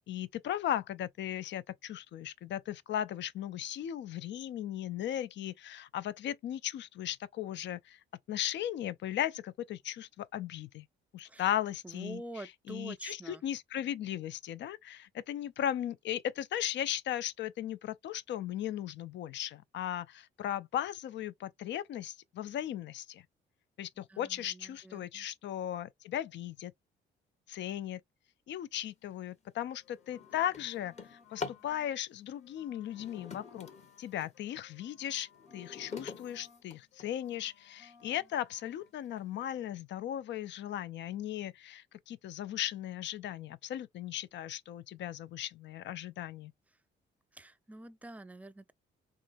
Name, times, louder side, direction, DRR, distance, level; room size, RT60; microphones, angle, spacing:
voice 1, 0.1-8.0 8.3-10.9 11.1-12.2 12.7-23.2 23.8-26.7 27.5-28.0 28.5-33.7 34.0-46.5, left 11 dB, 65° left, 0.4 m, -37 dB
voice 2, 11.8-13.4 24.0-25.3 47.3-48.7, right 2 dB, 5° right, 0.4 m, -47 dB
Drawer open or close, 29.0-29.3 29.7-31.7 32.8-34.4 34.9-37.3 38.0-38.1 38.6-38.7 39.0-39.4, left 4 dB, 35° left, 1.0 m, -46 dB
sound 1, 29.7-32.0 32.3-36.6 36.9-38.9, left 6 dB, 85° left, 1.5 m, -61 dB
3.7 x 3.0 x 2.5 m
cardioid pair, 90°, 20 cm